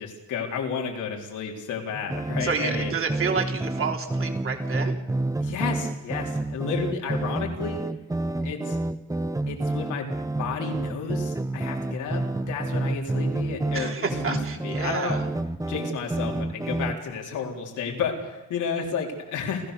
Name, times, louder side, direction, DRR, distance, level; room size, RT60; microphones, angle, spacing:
voice 1, 0.0-2.9 5.4-7.8 8.4-8.8 9.5-14.4 14.6-15.2 15.7-19.7, left 6 dB, 80° left, 1 dB, 4.1 m, -32 dB
sound 1, 1.9-17.1, right 2 dB, 10° right, 0.9 m, -29 dB
voice 2, 2.4-5.0 13.7-15.3, right 5 dB, 45° right, 2 dB, 3.6 m, -29 dB
29.0 x 13.5 x 6.8 m, 1.0 s
cardioid pair, 90°, 30 cm